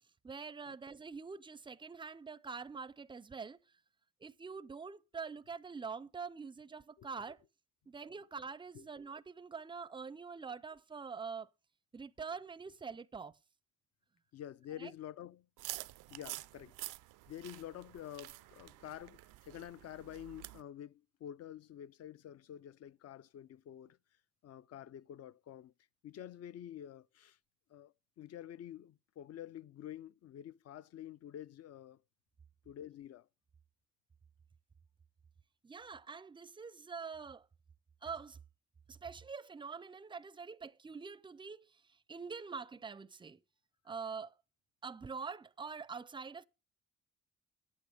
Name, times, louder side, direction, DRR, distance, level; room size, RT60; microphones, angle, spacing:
voice 1, 0.2-3.6 4.2-7.4 7.9-11.5 11.9-13.4 14.8-14.9 35.6-37.5 38.0-38.4 38.9-43.4 43.8-44.3 44.8-46.4, right 5 dB, 15° right, 0.4 m, -45 dB
voice 2, 14.3-15.5 16.1-16.8 17.3-24.0 24.4-25.7 26.0-27.4 27.7-32.0 32.7-33.3, left 11 dB, 55° left, 0.5 m, -49 dB
sound 1, 15.6-20.6, right 18 dB, 90° right, 0.5 m, -48 dB
9.6 x 8.4 x 5.0 m
cardioid pair, 90°, 30 cm